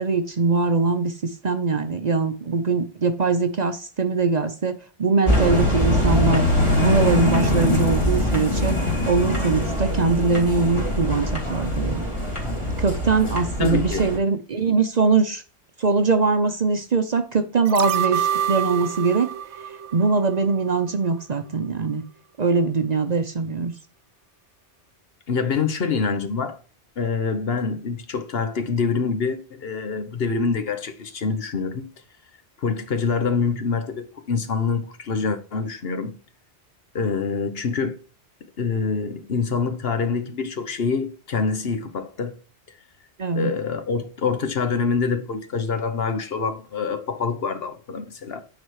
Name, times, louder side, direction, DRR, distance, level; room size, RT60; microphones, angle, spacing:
voice 1, 0.0-6.4 6.7-8.7 9.1-12.1 12.8-15.4 15.8-19.3 19.9-22.0 22.4-23.7 43.2-43.5, right 4 dB, 45° right, 0.7 m, -22 dB
sound 1, 5.3-14.2, left 1 dB, 25° left, 2.5 m, -23 dB
voice 2, 13.6-14.1 25.3-26.6 27.0-31.9 32.6-36.2 36.9-38.0 38.6-42.4 43.3-48.4, left 5 dB, 60° left, 1.2 m, -25 dB
sound 2, 17.7-20.8 21.1-21.2, right 9 dB, 85° right, 0.9 m, -27 dB
9.4 x 4.2 x 4.7 m
omnidirectional pair, 1.1 m